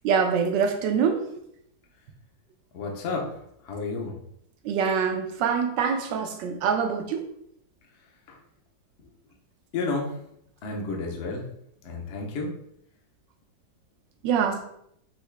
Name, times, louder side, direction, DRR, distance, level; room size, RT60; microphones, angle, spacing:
voice 1, 0.0-1.2 4.6-7.2 14.2-14.6, right 6 dB, 80° right, 6 dB, 1.3 m, -24 dB
voice 2, 2.7-4.2 8.3-8.4 9.7-10.2 10.6-11.5 11.8-12.5, left 3 dB, 55° left, 0 dB, 0.8 m, -31 dB
5.7 x 2.8 x 3.3 m, 0.73 s
omnidirectional pair, 2.0 m